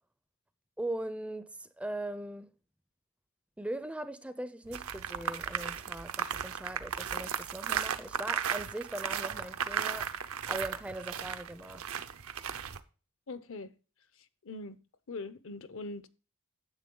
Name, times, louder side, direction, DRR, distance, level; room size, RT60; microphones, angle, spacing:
voice 1, 0.8-2.5 3.6-10.2 10.5-11.9, right 1 dB, 5° right, 0.5 m, -40 dB
sound 1, 4.7-12.8, right 8 dB, 75° right, 0.7 m, -35 dB
voice 2, 13.3-13.7 14.4-14.8 15.1-16.1, left 3 dB, 65° left, 0.7 m, -41 dB
9.9 x 7.4 x 3.8 m
head